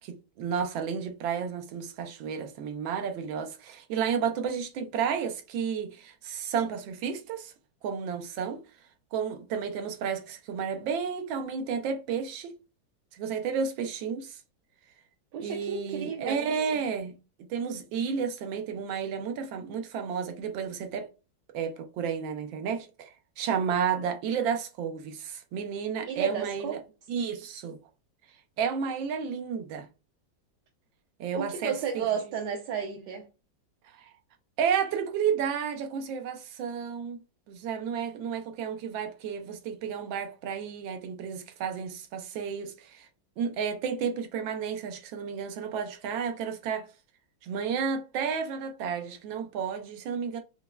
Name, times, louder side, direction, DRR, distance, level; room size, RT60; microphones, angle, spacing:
voice 1, 0.0-7.5 7.8-8.6 9.1-12.5 13.1-14.4 15.4-21.1 21.5-23.1 23.4-26.8 27.1-27.8 28.6-29.9 31.2-32.0 34.0-34.1 34.6-37.2 37.5-43.1 43.4-46.9 47.4-50.4, right 7 dB, 90° right, 1.4 m, -32 dB
voice 2, 15.3-16.5 26.0-26.8 31.3-33.2, right 7 dB, 75° right, 1.1 m, -33 dB
5.5 x 2.0 x 2.2 m
omnidirectional pair, 2.1 m